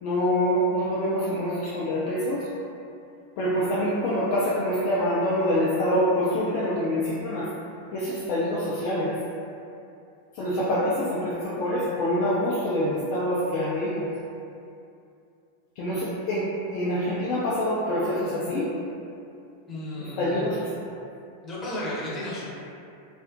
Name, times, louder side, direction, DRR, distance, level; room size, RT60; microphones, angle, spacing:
voice 1, 0.0-2.5 3.4-7.5 7.9-9.1 10.3-14.1 15.8-18.7 20.2-20.7, equal, 45° left, -8 dB, 0.3 m, -25 dB
voice 2, 19.7-20.4 21.4-22.5, left 1 dB, 25° left, -8 dB, 0.7 m, -33 dB
2.5 x 2.0 x 2.4 m, 2.6 s
figure-of-eight pair, 90°, 0 cm